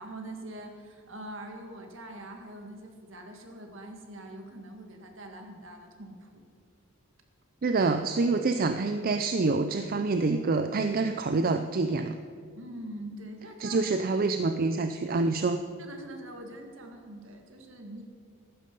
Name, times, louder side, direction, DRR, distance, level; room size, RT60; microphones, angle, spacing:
voice 1, 0.0-6.4 12.6-13.8 15.8-18.0, right 1 dB, 65° right, 4 dB, 1.9 m, -43 dB
voice 2, 7.6-12.2 13.6-15.6, right 3 dB, 45° right, 8 dB, 0.5 m, -26 dB
14.5 x 12.0 x 5.4 m, 2.1 s
head